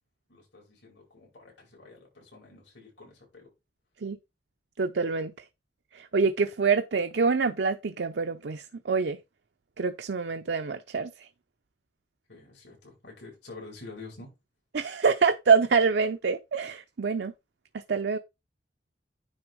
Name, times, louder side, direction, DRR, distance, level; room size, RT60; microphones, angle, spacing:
voice 1, 0.3-3.5 12.3-14.3, left 3 dB, 75° left, 5.1 m, -48 dB
voice 2, 4.8-5.4 5.9-9.2 9.8-11.3 14.7-17.3 17.9-18.2, right 5 dB, 70° right, 0.5 m, -26 dB
9.8 x 3.5 x 4.6 m
head